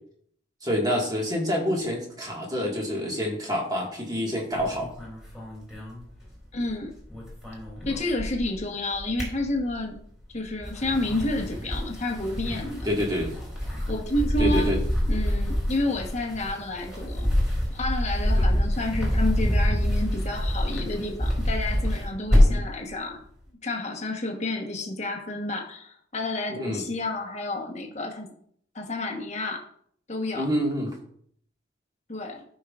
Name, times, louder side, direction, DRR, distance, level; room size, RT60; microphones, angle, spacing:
voice 1, 0.6-4.9 12.8-13.3 14.4-14.8 18.4-18.5 26.5-26.8 30.3-30.9, equal, 20° right, -1 dB, 1.7 m, -27 dB
sound 1, 4.5-6.7 7.0-8.6 8.9-10.0 10.5-22.7, equal, 5° right, 2.7 m, -26 dB
voice 2, 6.5-6.9 7.8-10.0 10.3-12.9 13.9-14.7 15.1-17.3 17.7-23.2 23.6-28.3 28.7-29.6 30.1-30.5 32.1-32.4, left 2 dB, 35° left, 2 dB, 1.1 m, -30 dB
13.0 x 5.4 x 2.4 m, 0.64 s
head